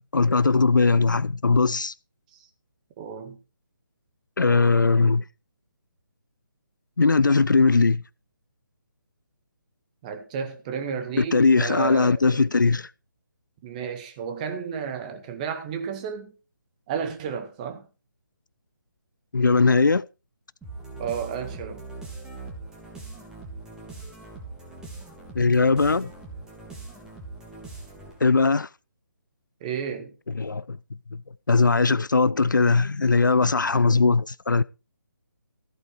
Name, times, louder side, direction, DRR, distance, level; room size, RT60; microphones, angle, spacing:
voice 1, 0.1-1.9 4.4-5.2 7.0-8.0 11.2-12.9 19.3-20.0 25.3-26.1 28.2-28.7 30.3-30.8 31.5-34.6, left 4 dB, 65° left, 0.5 m, -20 dB
voice 2, 3.0-3.4 10.0-12.4 13.6-16.3 16.9-17.9 21.0-21.8 29.6-30.1, right 7 dB, 20° right, 1.8 m, -32 dB
sound 1, 20.6-28.3, right 3 dB, 5° right, 2.8 m, -41 dB
15.0 x 8.1 x 4.6 m
figure-of-eight pair, 145°, 11 cm